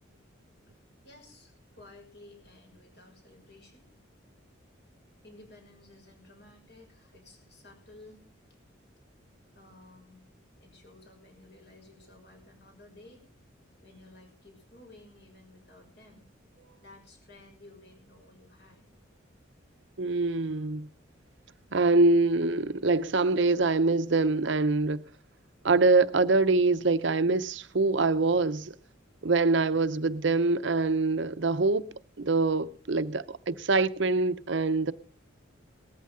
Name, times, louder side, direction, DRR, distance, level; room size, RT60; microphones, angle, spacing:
voice 1, 1.0-3.9 5.2-8.3 9.5-10.2 10.6-13.3 13.8-16.2 16.8-18.9, left 2 dB, 55° left, 6.4 m, -54 dB
voice 2, 20.0-20.9 21.7-25.0 25.6-28.7 29.2-31.8 32.2-34.9, right 3 dB, 65° right, 0.7 m, -24 dB
19.0 x 14.0 x 3.7 m
head